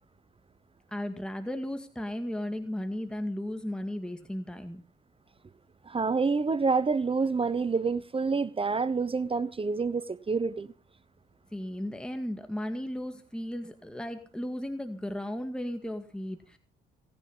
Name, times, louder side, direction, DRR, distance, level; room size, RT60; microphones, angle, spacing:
voice 1, 0.9-4.8 11.5-16.6, left 1 dB, 5° left, 2.0 m, -35 dB
voice 2, 5.8-10.7, right 4 dB, 25° right, 1.0 m, -27 dB
18.0 x 10.5 x 5.5 m
supercardioid pair, 80°, 21 cm